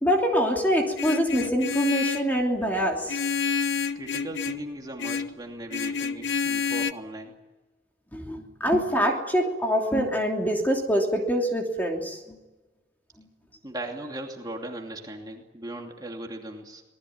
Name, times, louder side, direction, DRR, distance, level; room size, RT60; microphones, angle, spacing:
voice 1, 0.0-3.2 8.1-12.4 13.2-13.3, equal, 10° left, 1 dB, 3.0 m, -25 dB
Vehicle horn car horn honking, 1.0-2.3 3.1-4.7 5.0-5.4 5.7-6.9, left 6 dB, 90° left, 0.9 m, -28 dB
voice 2, 3.9-7.3 13.6-16.8, right 1 dB, 20° right, 1 dB, 2.7 m, -38 dB
26.5 x 20.0 x 9.6 m, 1.1 s
head